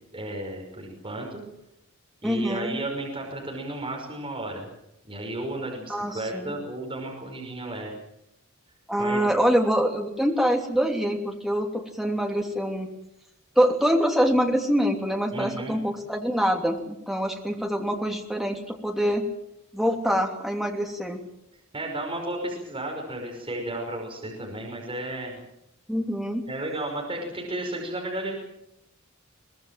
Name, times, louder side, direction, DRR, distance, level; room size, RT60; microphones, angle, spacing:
voice 1, 0.1-1.4 2.2-4.7 5.0-7.9 9.0-9.2 15.3-15.8 21.7-25.4 26.5-28.4, right 1 dB, 25° right, 0 dB, 5.6 m, -33 dB
voice 2, 2.2-2.8 5.9-6.6 8.9-12.9 13.6-19.3 19.7-21.2 25.9-26.5, equal, ahead, 2 dB, 2.9 m, -25 dB
23.5 x 20.0 x 7.6 m, 0.83 s
head